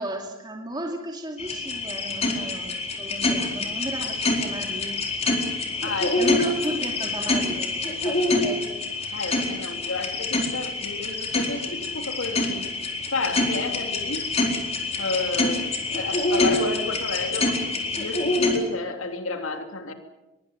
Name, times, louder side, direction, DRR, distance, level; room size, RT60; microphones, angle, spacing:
voice 1, 0.0-5.0 6.2-8.8, right 1 dB, 20° right, 2 dB, 2.7 m, -34 dB
sound 1, 1.4-18.6, left 2 dB, 30° left, 4.3 m, -26 dB
voice 2, 5.8-6.5 9.1-12.7 13.1-14.3 15.0-19.9, left 3 dB, 75° left, 5 dB, 3.1 m, -31 dB
24.0 x 22.5 x 7.9 m, 1.0 s
head